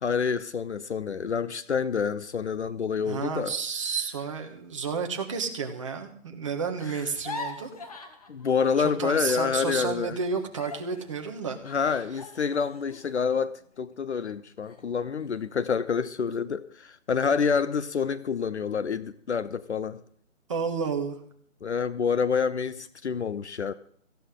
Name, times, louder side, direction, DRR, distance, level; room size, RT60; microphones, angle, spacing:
voice 1, 0.0-3.5 8.3-10.2 11.6-20.0 21.6-23.7, left 6 dB, 65° left, 0.7 m, -28 dB
voice 2, 3.0-7.7 8.8-11.6 20.5-21.2, right 5 dB, 25° right, 1.3 m, -31 dB
sound 1, 7.0-9.5 9.8-14.2 14.6-14.8 15.2-15.7, left 3 dB, 30° left, 1.3 m, -43 dB
17.0 x 15.0 x 3.8 m
hypercardioid pair, 170°, 38 cm